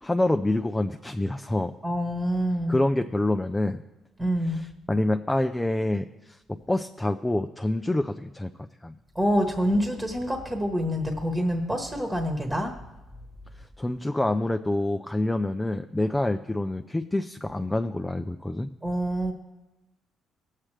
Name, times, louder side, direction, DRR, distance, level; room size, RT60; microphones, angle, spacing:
voice 1, 0.0-1.7 2.7-3.8 4.9-6.4 6.7-8.5 8.8-8.9 13.8-18.7, left 1 dB, 10° left, 6 dB, 0.4 m, -26 dB
voice 2, 1.8-2.8 4.2-4.6 9.1-12.7 18.8-19.3, equal, 15° right, 3 dB, 1.3 m, -26 dB
17.5 x 7.5 x 3.3 m, 1.0 s
cardioid pair, 90°, 0 cm